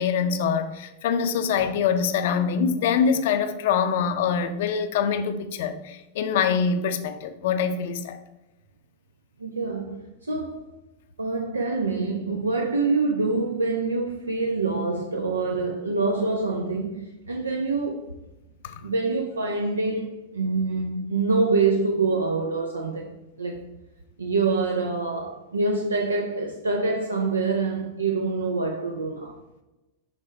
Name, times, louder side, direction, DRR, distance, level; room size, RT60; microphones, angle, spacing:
voice 1, 0.0-8.2 18.6-18.8, left 6 dB, 55° left, 0.6 m, -24 dB
voice 2, 9.4-10.7 11.2-18.1 18.8-23.6 24.2-29.4, right 3 dB, 75° right, 0.5 m, -26 dB
6.5 x 3.4 x 4.3 m
figure-of-eight pair, 90°, 0 cm